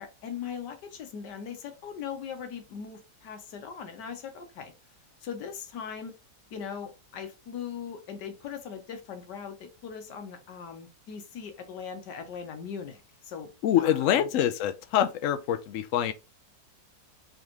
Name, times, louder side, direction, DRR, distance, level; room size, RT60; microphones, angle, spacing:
voice 1, 0.0-4.7 5.2-6.1 6.5-13.5 13.8-14.3, left 7 dB, 90° left, 1.6 m, -40 dB
voice 2, 13.6-16.1, left 10 dB, 70° left, 0.8 m, -25 dB
3.9 x 3.4 x 3.0 m
omnidirectional pair, 1.8 m